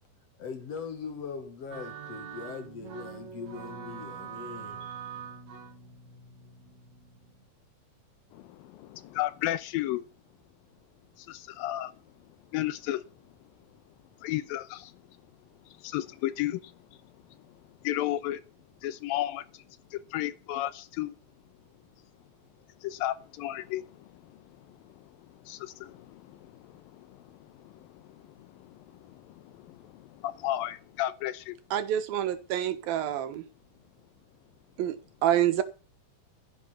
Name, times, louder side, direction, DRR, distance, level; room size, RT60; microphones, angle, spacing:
voice 1, 0.4-5.1, left 5 dB, 50° left, 2.4 m, -41 dB
sound 1, 1.7-7.4, right 7 dB, 55° right, 3.4 m, -44 dB
voice 2, 8.3-10.1 11.2-12.0 12.5-13.3 14.2-15.0 15.7-18.4 18.8-19.6 19.9-21.2 22.8-31.6, left 14 dB, 85° left, 2.6 m, -35 dB
voice 3, 31.7-33.4 34.8-35.0 35.2-35.6, right 11 dB, 80° right, 3.1 m, -27 dB
15.5 x 8.6 x 5.6 m
omnidirectional pair, 4.1 m